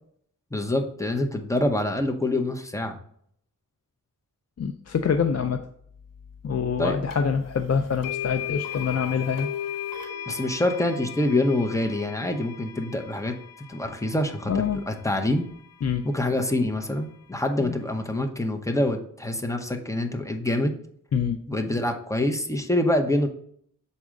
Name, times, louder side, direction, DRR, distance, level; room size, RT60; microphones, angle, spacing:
voice 1, 0.5-3.0 6.8-7.0 10.3-13.3 13.7-15.5 16.0-20.7 21.5-23.3, left 1 dB, 10° left, 4 dB, 0.7 m, -26 dB
voice 2, 4.6-5.7 6.4-9.5 14.5-14.8 15.8-16.0 17.6-17.7 21.1-21.4, left 6 dB, 50° left, 6 dB, 0.4 m, -25 dB
sound 1, 7.1-7.2 8.0-16.1, left 10 dB, 80° left, 1.0 m, -37 dB
6.3 x 4.2 x 3.6 m, 0.66 s
wide cardioid pair, 95°, 33 cm